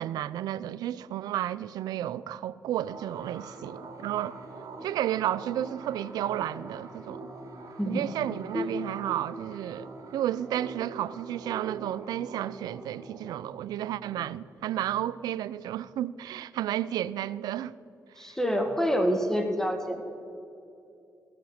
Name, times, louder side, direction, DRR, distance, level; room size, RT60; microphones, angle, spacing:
voice 1, 0.0-4.4 4.8-7.3 7.9-17.7 18.2-18.4, right 12 dB, 85° right, 0.3 m, -32 dB
sound 1, 2.8-16.0, right 3 dB, 60° right, 2.0 m, -44 dB
voice 2, 18.2-20.0, equal, 5° left, 1.5 m, -27 dB
15.5 x 7.0 x 6.5 m
supercardioid pair, 60°, 7 cm